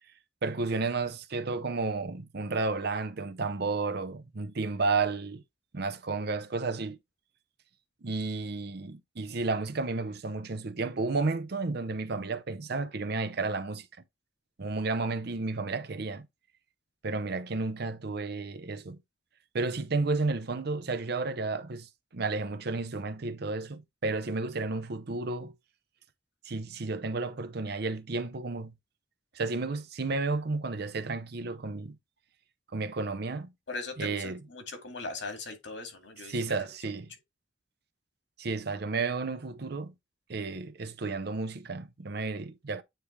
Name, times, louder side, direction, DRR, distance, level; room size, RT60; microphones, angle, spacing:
voice 1, 0.4-5.4 5.7-7.0 8.0-13.9 14.6-16.3 17.0-19.0 19.5-25.5 26.4-28.7 29.3-32.0 32.7-33.5 34.0-34.4 36.3-37.1 38.4-39.9 40.3-42.8, right 3 dB, 65° right, 0.7 m, -32 dB
voice 2, 33.7-36.5, left 3 dB, 80° left, 2.1 m, -39 dB
9.1 x 3.4 x 3.2 m
head